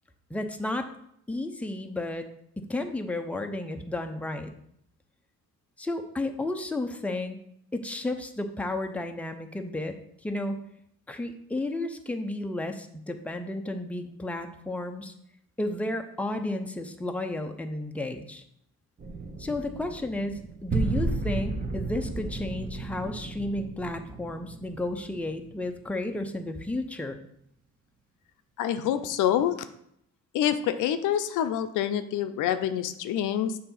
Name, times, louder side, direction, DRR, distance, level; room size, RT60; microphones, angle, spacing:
voice 1, 0.3-0.9 1.3-2.3 2.6-4.5 5.8-7.4 7.7-9.9 10.2-10.6 11.1-15.1 15.6-18.4 19.4-27.2, left 2 dB, 5° left, 5 dB, 0.6 m, -32 dB
sound 1, 19.0-25.8, right 3 dB, 25° right, 0.9 m, -34 dB
voice 2, 28.6-29.6 30.3-33.6, left 10 dB, 85° left, 10 dB, 0.5 m, -26 dB
6.6 x 2.8 x 5.7 m, 0.72 s
cardioid pair, 90°, 30 cm